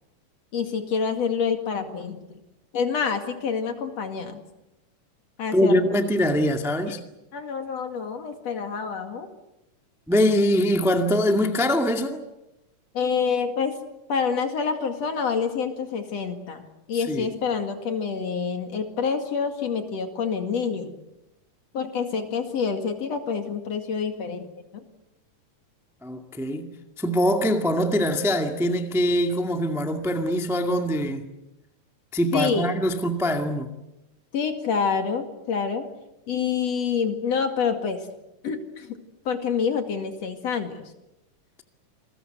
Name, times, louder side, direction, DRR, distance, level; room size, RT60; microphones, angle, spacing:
voice 1, 0.5-2.4 2.7-4.4 5.4-6.0 7.3-9.3 12.9-13.8 14.1-16.6 16.9-21.0 21.7-24.5 24.7-24.8 32.3-32.7 34.3-35.9 36.3-38.0 38.4-39.0 39.3-40.8, left 6 dB, 55° left, 3.2 m, -27 dB
voice 2, 5.5-7.0 10.1-12.2 16.9-17.3 26.0-26.7 27.0-31.3 32.1-33.7, equal, ahead, 1.2 m, -23 dB
28.5 x 21.0 x 8.1 m
omnidirectional pair, 3.7 m